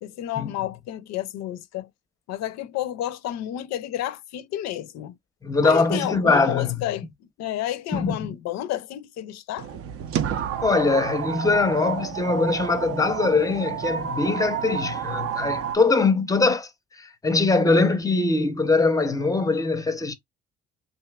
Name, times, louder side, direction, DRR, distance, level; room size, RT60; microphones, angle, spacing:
voice 1, 0.0-1.9 2.3-5.2 5.6-7.1 7.4-9.8, left 12 dB, 60° left, 0.5 m, -31 dB
voice 2, 5.4-6.8 7.9-8.3 10.4-20.1, left 3 dB, 10° left, 0.6 m, -22 dB
sound 1, 9.6-15.8, right 8 dB, 50° right, 0.5 m, -30 dB
2.7 x 2.2 x 2.2 m
hypercardioid pair, 50°, 30 cm